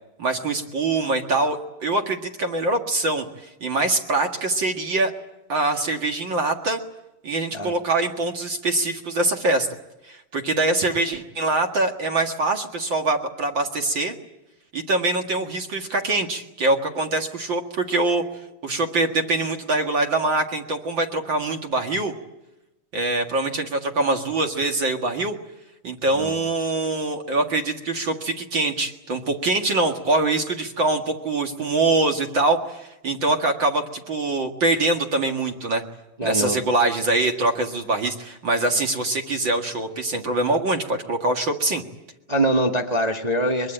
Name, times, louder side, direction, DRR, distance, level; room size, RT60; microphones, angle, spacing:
voice 1, 0.2-5.1 5.5-6.8 7.2-9.7 10.1-14.1 14.7-18.2 18.6-22.1 22.9-25.4 25.8-35.8 36.2-41.8, right 2 dB, 40° right, 4 dB, 2.1 m, -23 dB
voice 2, 36.2-36.6 42.3-43.7, right 1 dB, 85° right, 2 dB, 0.3 m, -23 dB
23.5 x 23.0 x 9.0 m, 0.94 s
omnidirectional pair, 3.9 m